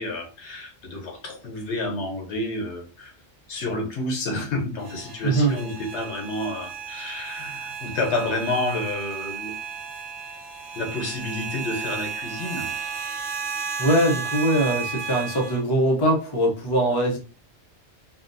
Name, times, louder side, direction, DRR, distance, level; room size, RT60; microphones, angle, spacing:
voice 1, 0.0-3.1 3.5-9.6 10.7-12.7, left 2 dB, 75° left, 1 dB, 1.1 m, -30 dB
sound 1, 4.8-15.6, right 6 dB, 55° right, 0.7 m, -33 dB
voice 2, 13.8-17.2, right 1 dB, 30° left, 1 dB, 0.5 m, -21 dB
3.9 x 2.1 x 2.5 m, 0.36 s
omnidirectional pair, 1.2 m